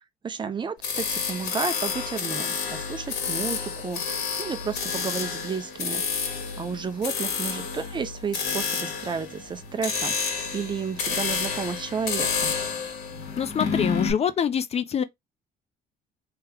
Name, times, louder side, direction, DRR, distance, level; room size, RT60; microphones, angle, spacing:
voice 1, 0.2-6.0 6.3-12.5, right 5 dB, 30° right, 0.6 m, -32 dB
sound 1, 0.8-14.1, left 6 dB, 70° left, 2.0 m, -30 dB
voice 2, 13.4-15.0, left 8 dB, 40° left, 0.5 m, -25 dB
3.4 x 2.9 x 3.4 m
cardioid pair, 110°, 17 cm